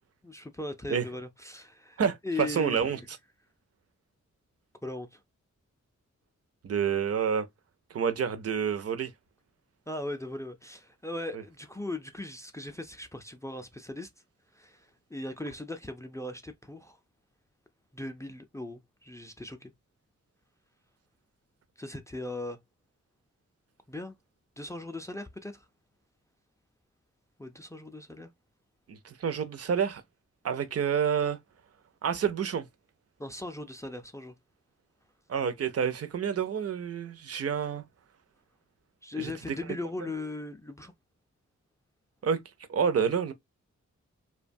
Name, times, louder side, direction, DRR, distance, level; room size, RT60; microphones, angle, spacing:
voice 1, 0.2-3.0 4.8-5.2 9.9-14.1 14.5-17.0 17.9-19.7 21.8-22.6 23.9-24.2 24.6-25.7 27.4-28.3 33.2-34.3 39.0-40.9, left 2 dB, 10° left, 0.4 m, -39 dB
voice 2, 2.0-3.0 6.6-7.5 7.9-9.1 11.3-11.4 28.9-30.0 30.4-31.4 32.0-32.7 35.3-37.8 39.2-39.3 42.2-42.4 42.7-43.3, right 7 dB, 55° right, 0.5 m, -28 dB
2.6 x 2.2 x 2.5 m
cardioid pair, 70°, 30 cm